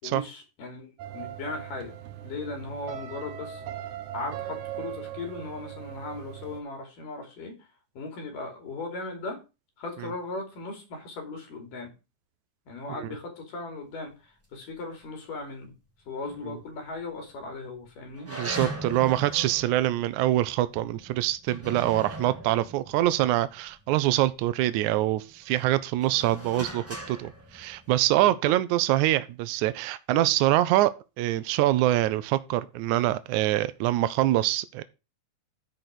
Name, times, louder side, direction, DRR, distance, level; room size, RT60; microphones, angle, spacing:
voice 1, 0.0-2.0 2.2-3.6 4.1-7.7 7.9-9.4 9.8-11.9 12.7-15.7 16.1-18.3 28.1-28.5 30.1-30.3, left 3 dB, 65° left, 4.5 m, -38 dB
sound 1, 1.0-6.6, right 11 dB, 65° right, 2.1 m, -39 dB
sound 2, 16.3-17.0 17.4-17.5 18.2-24.3 24.8-28.2, right 1 dB, 5° right, 1.1 m, -41 dB
voice 2, 18.3-34.8, right 15 dB, 85° right, 1.7 m, -25 dB
12.0 x 5.1 x 6.0 m
omnidirectional pair, 4.2 m